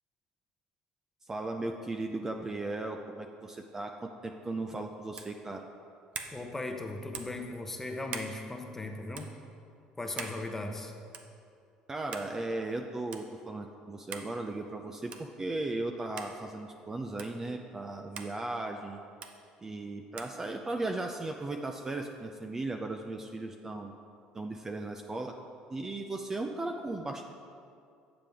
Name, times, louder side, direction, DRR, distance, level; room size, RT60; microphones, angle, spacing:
voice 1, 1.3-5.7 11.9-19.0 19.6-23.9 24.3-25.3 25.7-27.2, right 2 dB, 20° right, 4 dB, 0.4 m, -36 dB
sound 1, 5.1-5.4 6.1-6.4 7.1-7.4 8.1-8.3 9.1-9.3 10.2-10.4 11.1-11.4 12.1-12.3 13.1-13.2 14.1-14.3 15.1-15.3 16.2-16.3 17.2-17.3 18.1-18.3 19.2-19.3 20.2-20.3, right 6 dB, 55° right, 0.7 m, -41 dB
voice 2, 6.3-9.3 10.0-10.9, left 2 dB, 15° left, 3 dB, 0.8 m, -38 dB
7.4 x 6.9 x 3.5 m, 2.4 s
supercardioid pair, 95°, 2 cm